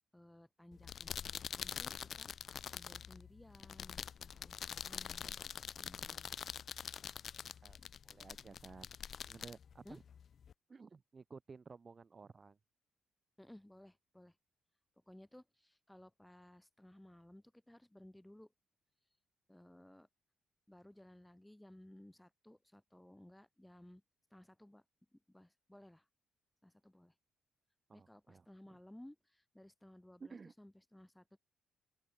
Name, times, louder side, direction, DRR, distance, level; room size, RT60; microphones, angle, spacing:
voice 1, 0.1-2.3 2.7-6.3 7.8-8.3 9.8-10.0 13.4-14.4 15.1-18.5 19.5-20.1 20.7-24.0 24.3-24.8 25.1-26.0 26.6-27.1 27.9-31.4, left 1 dB, 5° left, 1.8 m, -59 dB
sound 1, 0.7-10.5, left 8 dB, 55° left, 0.3 m, -46 dB
voice 2, 8.0-8.9 9.3-10.0 10.7-12.6 27.9-28.8 30.2-30.5, right 4 dB, 35° right, 5.0 m, -54 dB
open air
cardioid pair, 90°, 0 cm